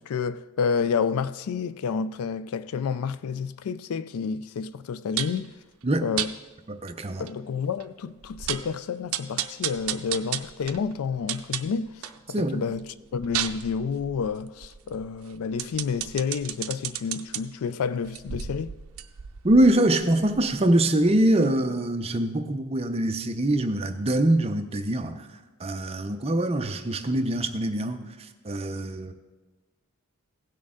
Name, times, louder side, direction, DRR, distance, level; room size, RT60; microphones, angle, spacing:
voice 1, 0.0-5.5 6.0-6.4 7.2-12.1 12.4-18.8, left 6 dB, 80° left, 0.4 m, -29 dB
sound 1, 5.2-5.5 6.2-6.3 6.9-7.0 7.3-7.4 7.8-7.9 8.2-8.7 9.1-12.2 12.6-17.4 18.0-20.7 21.0-21.1, right 11 dB, 70° right, 0.5 m, -33 dB
voice 2, 6.7-7.2 12.3-12.6 19.4-25.3 25.6-28.0 28.4-29.1, right 1 dB, 25° right, 0.6 m, -23 dB
16.5 x 6.4 x 3.7 m
head